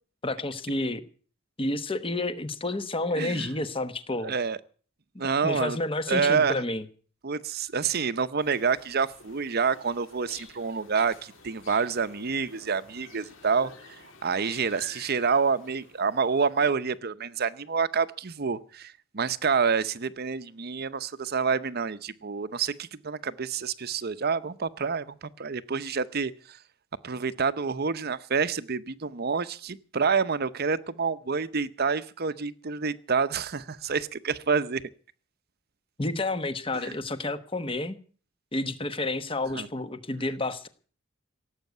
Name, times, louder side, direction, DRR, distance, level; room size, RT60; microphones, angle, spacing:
voice 1, 0.2-1.0 1.6-4.3 5.4-6.8 36.0-38.0 38.5-40.7, left 2 dB, 25° left, 1.1 m, -30 dB
voice 2, 3.2-3.5 4.2-4.6 5.2-5.8 6.1-6.6 7.2-26.6 27.0-34.8 36.8-37.0 39.5-39.7, right 5 dB, 45° right, 0.7 m, -28 dB
sound 1, 8.4-16.8, left 4 dB, 60° left, 3.4 m, -51 dB
17.5 x 8.3 x 9.3 m
head